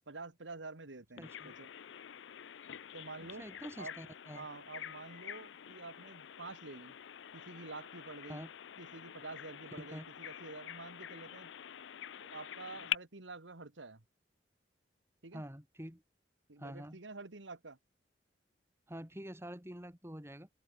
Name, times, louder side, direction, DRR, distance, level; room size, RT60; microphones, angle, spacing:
voice 1, 0.1-1.7 2.9-3.4 3.8-7.0 7.3-8.4 8.8-11.5 12.2-14.0 15.2-15.4 16.5-17.8, right 3 dB, 90° right, 1.8 m, -48 dB
Bird vocalization bird call bird song, 1.2-12.9, left 10 dB, 80° left, 0.5 m, -46 dB
voice 2, 1.2-1.5 3.4-4.5 8.3-8.5 9.8-10.1 15.3-16.0 16.6-17.0 18.9-20.5, equal, 15° right, 3.1 m, -46 dB
open air
head